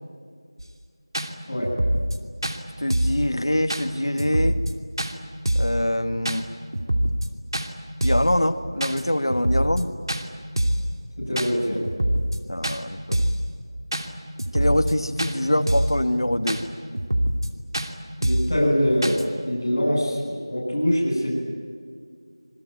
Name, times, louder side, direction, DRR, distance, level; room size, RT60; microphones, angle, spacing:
sound 1, 0.6-0.7 1.1-1.3 1.6-2.2 2.4-2.6 2.9-3.2 3.7-3.8 4.2-4.7 5.0-5.1 5.4-5.8 6.2-6.4 6.7-7.3 7.5-7.7 8.0-8.3 8.8-9.0 9.3-9.8 10.1-10.2 10.6-10.9 11.4-11.5 11.8-12.4 12.6-12.8 13.1-13.4 13.9-14.1 14.4-14.9 15.2-15.3 15.7-16.0 16.5-16.6 16.9-17.5 17.7-17.9 18.2-18.5 19.0-19.2, right 1 dB, 60° right, 2.7 m, -24 dB
voice 1, 2.8-4.6 5.5-6.5 8.0-9.9 12.5-13.3 14.5-16.6, left 1 dB, 75° left, 6 dB, 2.2 m, -24 dB
voice 2, 11.3-11.8 18.2-19.2 19.4-21.3, equal, 25° left, -8 dB, 7.9 m, -23 dB
26.5 x 22.5 x 9.2 m, 2.1 s
figure-of-eight pair, 175°, 3 cm